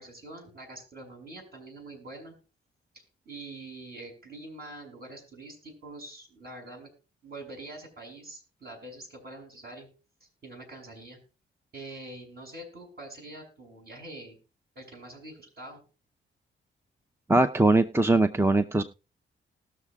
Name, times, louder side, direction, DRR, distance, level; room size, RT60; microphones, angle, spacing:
voice 1, 0.0-2.3 2.9-6.9 7.2-9.9 10.2-11.2 11.7-14.4 14.7-15.8, right 2 dB, 50° right, 1 dB, 6.5 m, -45 dB
voice 2, 17.3-18.8, right 2 dB, 10° right, 9 dB, 0.7 m, -21 dB
19.5 x 6.7 x 2.4 m, 0.34 s
cardioid pair, 70°, 21 cm